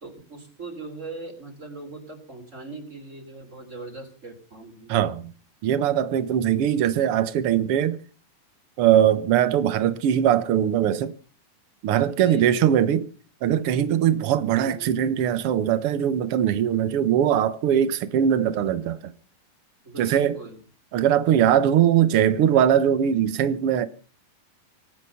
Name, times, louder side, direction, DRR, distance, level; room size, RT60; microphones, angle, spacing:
voice 1, 0.0-5.0 12.1-12.9 14.5-15.0 19.8-20.6, right 3 dB, 20° right, 3.3 m, -40 dB
voice 2, 4.9-5.3 5.6-8.0 8.8-11.1 11.8-13.1 13.4-19.1 20.0-20.4 20.9-23.9, right 10 dB, 70° right, 1.3 m, -21 dB
25.5 x 9.0 x 5.8 m
omnidirectional pair, 4.1 m